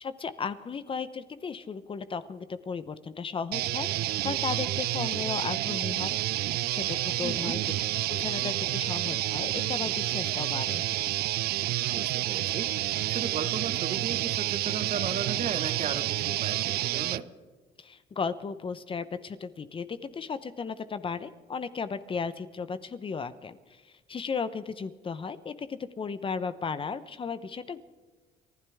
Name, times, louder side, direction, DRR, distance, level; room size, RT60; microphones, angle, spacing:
voice 1, 0.0-6.2 6.7-7.6 8.1-10.8 17.8-27.8, left 5 dB, 30° left, 13 dB, 0.8 m, -35 dB
sound 1, 3.5-17.2, right 16 dB, 70° right, 0.4 m, -29 dB
voice 2, 7.2-7.6 11.9-17.3, right 6 dB, 45° right, 10 dB, 1.3 m, -36 dB
29.5 x 12.0 x 3.6 m, 1.4 s
cardioid pair, 110°, 17 cm